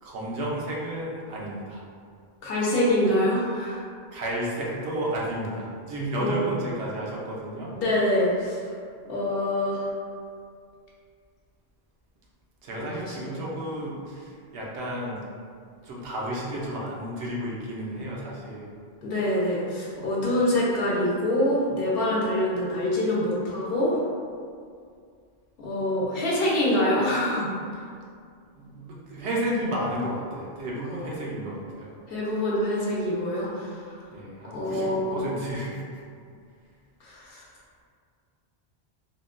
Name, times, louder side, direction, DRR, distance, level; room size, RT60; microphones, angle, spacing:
voice 1, 0.0-1.8 4.1-7.7 12.6-15.2 15.8-18.7 20.2-20.3 28.6-32.0 34.1-36.0, right 1 dB, 75° right, -4 dB, 0.9 m, -32 dB
voice 2, 2.4-3.8 6.2-6.6 7.7-8.6 9.1-9.9 12.8-13.4 19.0-24.0 25.6-27.5 30.8-31.1 32.1-34.0 34.5-35.2 37.0-37.5, left 1 dB, 65° left, -5 dB, 0.8 m, -25 dB
3.5 x 2.1 x 2.4 m, 2.2 s
omnidirectional pair, 1.1 m